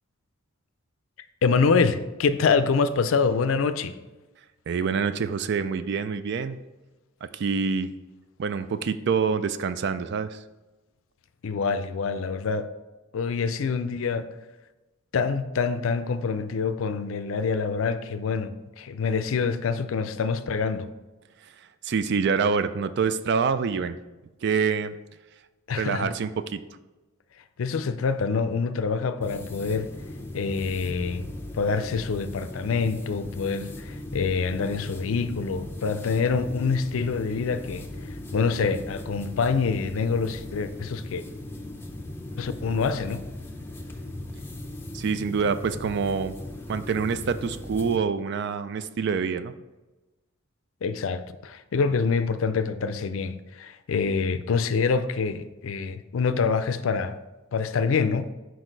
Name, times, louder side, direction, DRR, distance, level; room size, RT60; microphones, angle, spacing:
voice 1, 1.4-3.9 11.4-12.7 13.1-14.3 15.1-20.9 25.7-26.1 27.6-29.9 30.3-41.3 42.4-43.2 50.8-57.2 57.5-58.3, left 5 dB, 75° left, 0.4 m, -26 dB
voice 2, 4.7-6.6 7.2-7.9 8.4-10.4 21.8-24.0 24.4-25.0 25.8-26.6 44.9-46.3 46.7-49.5, right 5 dB, 55° right, 0.4 m, -26 dB
sound 1, 29.2-48.0, left 1 dB, 10° left, 0.6 m, -38 dB
6.3 x 4.7 x 3.9 m
head